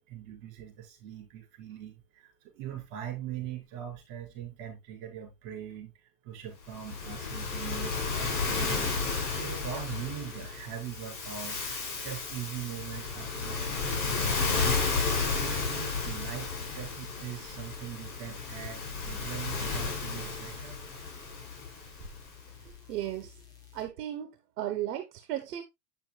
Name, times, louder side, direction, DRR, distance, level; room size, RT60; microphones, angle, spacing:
voice 1, 0.0-5.9 6.2-11.6 12.0-14.8 15.2-20.8 22.0-22.1, right 10 dB, 45° right, 4.7 m, -42 dB
Waves surf, 6.7-22.2, left 4 dB, 65° left, 4.8 m, -33 dB
sound 1, 9.2-23.9, left 9 dB, 10° left, 0.4 m, -53 dB
voice 2, 22.6-23.4 23.7-24.3 24.6-25.6, right 12 dB, 75° right, 1.2 m, -35 dB
8.6 x 7.0 x 2.3 m
supercardioid pair, 155°, 47 cm